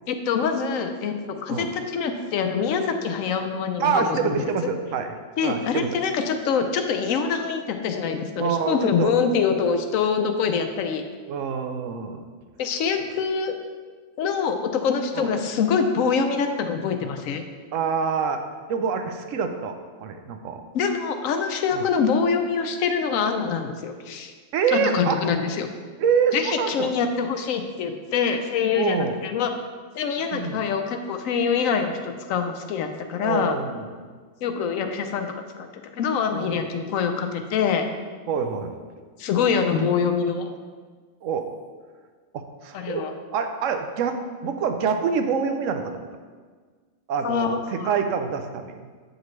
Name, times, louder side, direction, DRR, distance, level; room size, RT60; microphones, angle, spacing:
voice 1, 0.1-1.1 1.4-4.3 5.4-11.0 12.6-13.5 14.2-17.4 20.7-24.3 24.7-25.7 26.3-29.5 30.0-33.5 34.4-35.7 35.9-37.8 39.2-40.5 42.7-43.1 47.2-47.9, left 6 dB, 80° left, 6 dB, 1.0 m, -25 dB
voice 2, 3.8-5.1 5.4-5.9 8.4-9.1 11.3-12.2 15.1-15.3 17.7-18.4 18.7-20.7 21.7-21.8 24.5-25.1 26.0-26.9 28.8-29.1 30.3-30.6 33.2-33.9 36.3-36.7 38.3-38.7 41.2-41.5 42.3-43.1 43.3-44.2 44.4-46.1 47.1-48.9, right 6 dB, 75° right, 6 dB, 0.9 m, -26 dB
8.1 x 5.1 x 3.1 m, 1.5 s
omnidirectional pair, 1.4 m